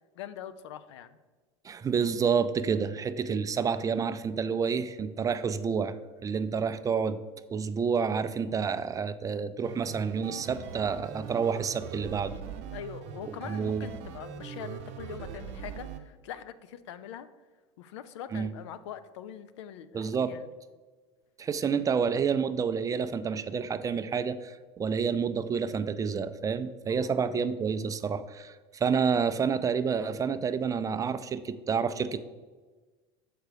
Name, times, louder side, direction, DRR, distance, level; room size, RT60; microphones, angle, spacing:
voice 1, 0.2-1.2 12.7-17.3 17.8-20.4 26.9-27.1, left 9 dB, 80° left, 12 dB, 0.5 m, -43 dB
voice 2, 1.6-5.9 6.2-7.2 7.5-12.4 13.5-13.9 18.3-18.5 19.9-20.3 21.4-32.2, right 6 dB, 25° right, 12 dB, 0.4 m, -29 dB
sound 1, 9.6-16.0, right 7 dB, 60° right, 0.8 m, -41 dB
6.5 x 4.6 x 5.0 m, 1.3 s
hypercardioid pair, 100°, 15 cm